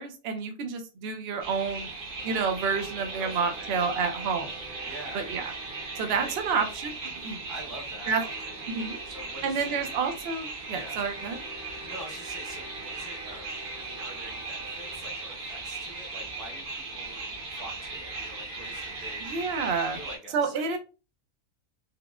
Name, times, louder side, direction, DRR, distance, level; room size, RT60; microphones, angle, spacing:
voice 1, 0.0-1.9 2.2-4.5 5.1-5.5 6.0-6.9 7.2-7.4 8.1-8.2 8.7-9.0 9.4-11.4 19.2-20.0 20.3-20.8, right 5 dB, 60° right, 5 dB, 0.7 m, -29 dB
sound 1, 1.4-20.2, right 3 dB, 85° right, 1.3 m, -38 dB
voice 2, 3.2-3.9 4.8-5.3 6.2-6.7 7.5-8.5 9.1-9.8 10.7-11.0 11.8-17.2 17.5-19.2 19.9-20.8, right 1 dB, ahead, -3 dB, 0.4 m, -45 dB
3.5 x 2.0 x 2.3 m, 0.33 s
omnidirectional pair, 1.5 m